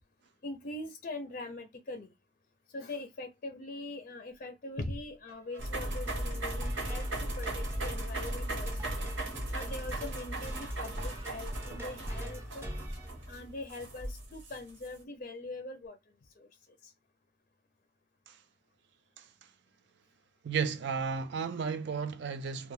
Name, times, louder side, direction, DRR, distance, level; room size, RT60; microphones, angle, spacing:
voice 1, 0.4-2.1 2.7-9.0 9.5-12.7 13.3-16.0 16.4-16.5, left 2 dB, 45° left, 0.4 m, -42 dB
sound 1, 5.3-13.9, equal, 15° right, 0.5 m, -44 dB
sound 2, 5.6-14.9, right 1 dB, 80° right, 0.9 m, -37 dB
voice 2, 20.4-22.7, right 6 dB, 60° right, 0.3 m, -33 dB
2.2 x 2.2 x 3.0 m
head